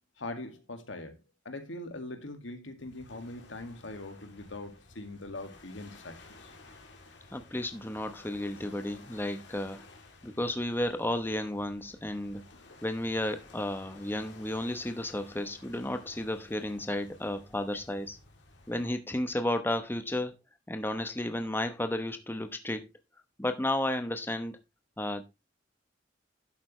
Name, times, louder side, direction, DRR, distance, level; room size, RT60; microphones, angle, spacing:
voice 1, 0.2-1.2 1.5-6.5, left 2 dB, 85° left, 2.0 m, -42 dB
sound 1, 2.8-18.9, left 2 dB, 70° left, 2.8 m, -54 dB
voice 2, 7.3-9.8 10.2-12.4 12.8-18.2 18.7-20.3 20.7-22.9 23.4-24.6 25.0-25.2, left 1 dB, 10° left, 0.9 m, -33 dB
11.0 x 8.2 x 3.1 m
head